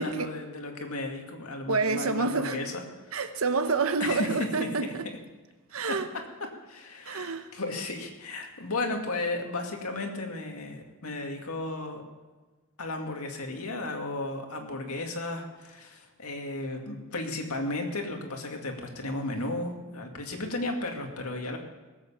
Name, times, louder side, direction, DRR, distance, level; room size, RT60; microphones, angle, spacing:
voice 1, 0.0-3.1 4.0-4.7 5.9-6.0 6.4-12.0 12.8-21.6, left 2 dB, 80° left, 3 dB, 2.3 m, -34 dB
voice 2, 1.7-2.6 3.1-5.1 5.7-6.1 7.0-7.5, right 4 dB, 65° right, 9 dB, 1.1 m, -28 dB
19.5 x 8.3 x 7.1 m, 1.3 s
head